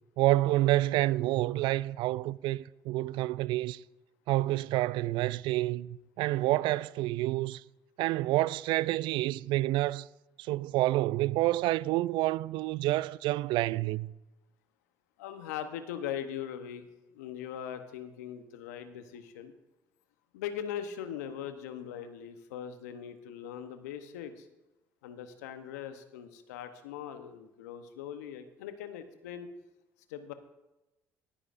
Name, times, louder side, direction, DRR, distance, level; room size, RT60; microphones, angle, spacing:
voice 1, 0.2-3.8 4.3-7.6 8.0-10.1 10.5-14.1, right 17 dB, 65° right, 0.3 m, -28 dB
voice 2, 15.2-16.9 17.1-19.5 20.3-24.5 25.0-29.5 30.1-30.3, left 9 dB, 85° left, 0.9 m, -40 dB
17.5 x 9.9 x 2.6 m
hypercardioid pair, 55°, 9 cm